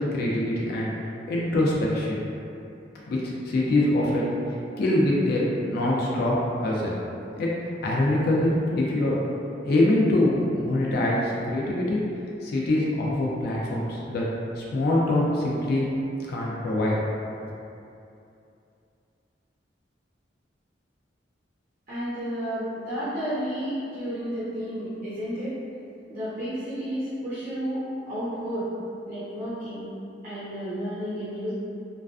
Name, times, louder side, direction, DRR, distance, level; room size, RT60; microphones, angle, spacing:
voice 1, 0.1-0.9 1.3-2.2 3.1-4.4 4.8-6.9 7.3-9.2 9.6-12.0 12.4-14.3 14.6-15.9 16.3-17.0, left 1 dB, 55° left, -4 dB, 0.3 m, -24 dB
voice 2, 21.9-25.6 26.1-28.7 29.1-29.9 30.2-31.5, equal, 50° right, -14 dB, 0.7 m, -31 dB
2.3 x 2.3 x 2.3 m, 2.7 s
head